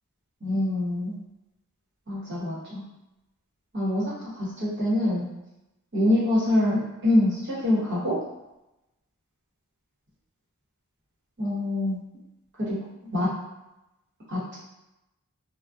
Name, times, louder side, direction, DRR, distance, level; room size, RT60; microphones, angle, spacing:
voice 1, 0.4-1.1 2.1-2.8 3.7-5.3 5.9-8.2 11.4-12.0 12.6-12.8 13.1-13.3 14.3-14.6, left 1 dB, 55° right, -8 dB, 1.0 m, -25 dB
2.5 x 2.1 x 2.3 m, 0.93 s
head